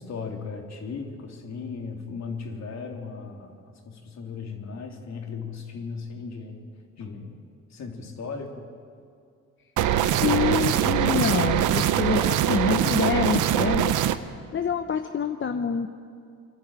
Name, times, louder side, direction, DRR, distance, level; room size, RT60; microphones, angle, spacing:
voice 1, 0.0-3.6 3.9-6.7 7.0-7.4 7.7-8.7, left 5 dB, 65° left, 2 dB, 3.3 m, -36 dB
sound 1, 9.8-14.2, right 11 dB, 85° right, 0.9 m, -22 dB
voice 2, 10.2-14.0 14.5-15.9, left 7 dB, 40° left, 7 dB, 1.0 m, -26 dB
26.5 x 12.0 x 9.0 m, 2.3 s
cardioid pair, 90°, 30 cm